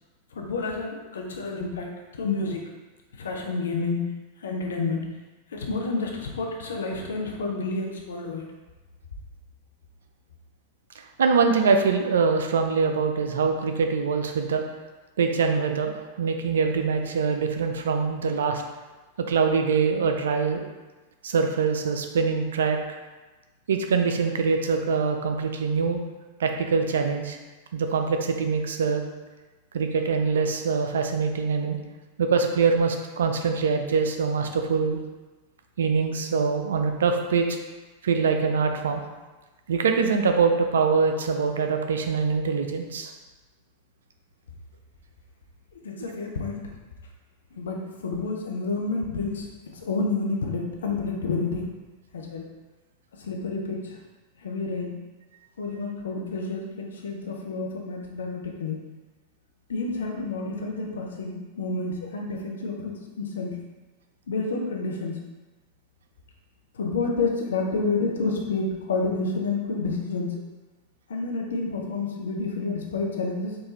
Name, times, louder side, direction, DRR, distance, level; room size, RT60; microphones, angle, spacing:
voice 1, 0.3-2.6 3.1-4.0 4.4-5.1 5.5-8.5 45.7-46.8 47.6-51.6 52.1-52.5 53.1-54.0 54.4-55.0 55.6-58.8 59.7-63.6 64.3-65.2 66.7-70.3 71.1-73.6, left 3 dB, 65° left, 1 dB, 0.5 m, -29 dB
voice 2, 11.0-14.6 15.2-15.9 16.2-18.6 19.3-20.7 21.2-22.8 23.7-26.0 26.4-27.4 27.7-29.0 29.7-31.8 32.2-35.0 35.8-37.5 38.0-39.1 39.7-43.1, right 5 dB, 65° right, 5 dB, 0.3 m, -24 dB
3.7 x 2.5 x 3.0 m, 1.2 s
figure-of-eight pair, 90°, 0 cm